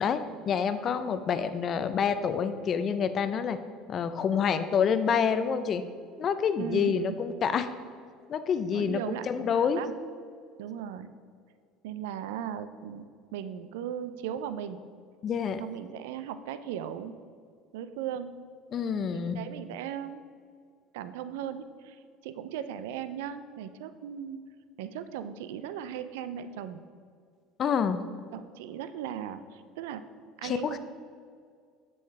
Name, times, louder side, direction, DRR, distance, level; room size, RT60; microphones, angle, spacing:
voice 1, 0.0-3.6 3.9-5.8 6.2-7.7 8.3-9.8 15.2-15.6 18.7-19.4 27.6-28.0 30.4-30.8, left 7 dB, 45° left, 11 dB, 0.5 m, -27 dB
voice 2, 6.6-7.2 8.7-9.9 10.6-11.1 11.8-14.8 15.6-17.2 17.7-18.3 19.1-20.2 20.9-24.4 24.8-26.8 28.3-30.0 30.4-30.8, right 9 dB, 80° right, 12 dB, 0.4 m, -37 dB
7.7 x 7.2 x 3.3 m, 2.1 s
supercardioid pair, 90°, 0 cm